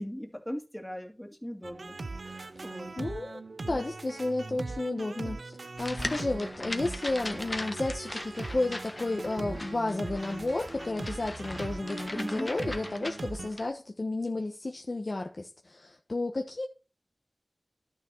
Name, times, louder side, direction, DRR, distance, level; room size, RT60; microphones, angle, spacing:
voice 1, 0.0-2.0 2.2-2.9 12.1-12.5, equal, 5° left, 2.4 m, -39 dB
sound 1, 1.6-13.5, right 3 dB, 80° right, 0.6 m, -40 dB
voice 2, 3.0-16.7, left 2 dB, 55° left, 1.1 m, -32 dB
sound 2, 5.8-13.7, left 2 dB, 40° left, 1.3 m, -40 dB
11.5 x 6.5 x 4.4 m
wide cardioid pair, 50°, 0 cm